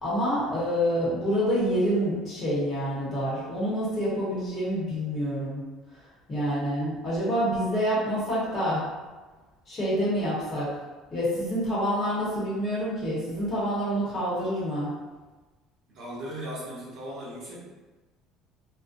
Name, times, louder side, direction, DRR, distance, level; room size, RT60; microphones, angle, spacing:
voice 1, 0.0-5.6 6.3-8.8 9.7-10.7 11.1-14.9, equal, 30° left, -8 dB, 1.1 m, -27 dB
voice 2, 15.9-17.6, equal, 50° right, -6 dB, 0.9 m, -38 dB
2.5 x 2.3 x 2.5 m, 1.2 s
cardioid pair, 140°, 0 cm